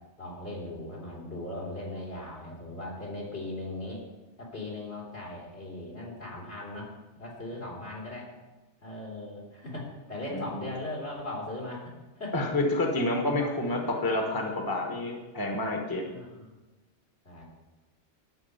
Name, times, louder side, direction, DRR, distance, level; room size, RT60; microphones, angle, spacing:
voice 1, 0.2-4.0 4.4-6.9 7.2-8.3 8.8-12.5 13.4-15.1 16.1-16.5 17.2-17.4, left 2 dB, 70° left, -4 dB, 3.3 m, -39 dB
voice 2, 12.3-16.1, left 2 dB, 20° left, 1 dB, 1.2 m, -28 dB
12.0 x 4.9 x 8.0 m, 1.1 s
omnidirectional pair, 1.2 m